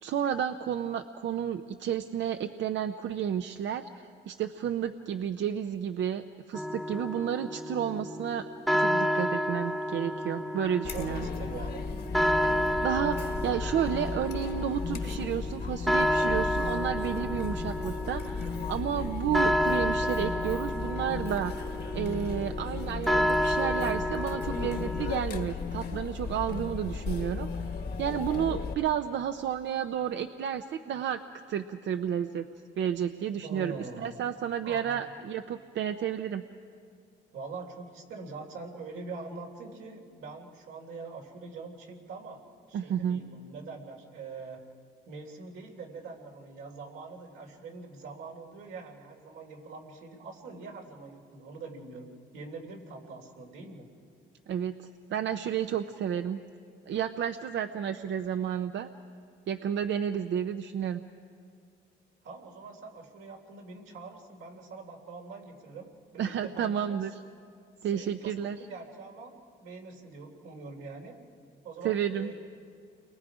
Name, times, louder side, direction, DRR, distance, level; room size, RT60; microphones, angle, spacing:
voice 1, 0.0-8.4 8.7-11.3 12.4-21.5 21.9-31.2 31.5-32.5 32.8-36.4 42.7-43.2 54.5-56.4 56.9-58.9 59.5-61.0 66.2-67.1 67.8-68.6 71.8-72.3, right 9 dB, 70° right, 8 dB, 0.7 m, -31 dB
sound 1, 6.5-25.2, equal, ahead, 1.0 m, -30 dB
Chatter, 10.8-28.7, left 5 dB, 55° left, 1.6 m, -35 dB
voice 2, 10.9-11.9 33.4-34.2 34.6-35.1 37.3-42.4 42.7-44.6 45.1-52.1 52.3-53.9 62.2-67.0 67.8-71.2 71.6-72.3, right 4 dB, 90° right, 0 dB, 3.5 m, -44 dB
29.5 x 22.5 x 5.0 m, 2.3 s
cardioid pair, 90°, 20 cm